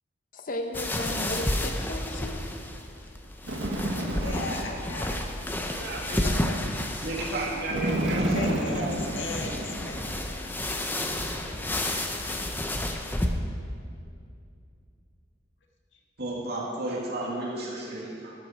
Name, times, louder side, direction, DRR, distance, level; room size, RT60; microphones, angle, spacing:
voice 1, 0.3-2.4, left 1 dB, 45° left, 5 dB, 0.8 m, -34 dB
sound 1, 0.7-13.3, left 1 dB, 10° left, 0.8 m, -31 dB
Bird, 3.4-4.8 7.7-10.2, right 1 dB, 90° right, 1.5 m, -29 dB
voice 2, 4.2-5.1 6.2-6.6 8.3-10.6 15.9-16.0, left 2 dB, 70° left, 0 dB, 1.8 m, -37 dB
voice 3, 5.7-6.2 7.0-8.4 16.2-18.3, right 2 dB, 60° right, -4 dB, 2.3 m, -33 dB
12.0 x 12.0 x 4.7 m, 2.4 s
head